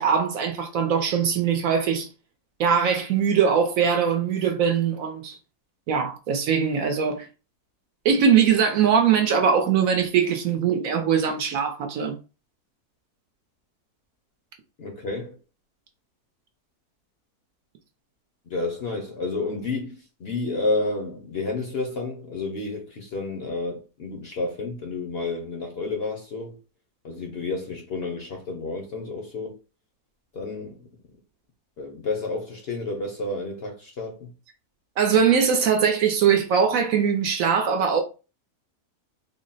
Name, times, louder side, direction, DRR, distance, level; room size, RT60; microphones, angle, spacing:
voice 1, 0.0-2.1 2.6-5.4 5.9-7.3 8.0-12.1 35.0-38.0, right 7 dB, 70° right, 0.9 m, -21 dB
voice 2, 14.8-15.4 18.5-26.6 27.0-29.6 30.3-30.9 31.8-34.3, left 3 dB, 55° left, 0.7 m, -30 dB
3.7 x 2.0 x 3.9 m
omnidirectional pair, 1.7 m